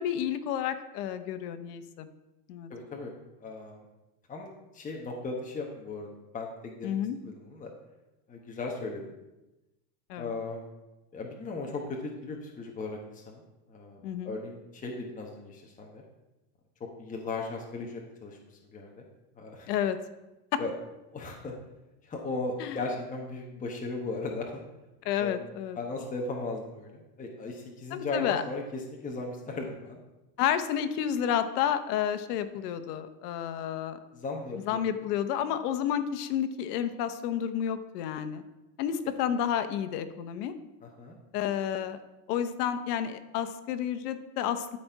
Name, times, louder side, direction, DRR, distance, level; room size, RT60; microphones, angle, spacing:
voice 1, 0.0-2.1 2.5-2.7 6.8-7.2 10.1-10.3 14.0-14.3 19.7-20.0 22.6-22.8 25.0-25.8 27.9-28.4 30.4-34.0 34.6-38.4 38.8-40.5 41.3-42.0 42.3-44.8, left 9 dB, 75° left, 10 dB, 1.0 m, -30 dB
voice 2, 2.7-3.1 3.4-3.8 4.3-6.1 6.3-7.0 7.2-7.7 8.3-9.1 10.2-10.6 11.1-13.4 13.7-14.0 14.2-16.0 17.0-18.4 18.7-19.0 19.4-19.7 20.6-20.7 21.1-21.5 22.0-24.6 25.2-25.4 25.7-30.0 34.1-34.9 40.8-41.2, left 3 dB, 15° left, 0 dB, 1.1 m, -37 dB
13.0 x 4.3 x 4.6 m, 0.99 s
supercardioid pair, 130°, 47 cm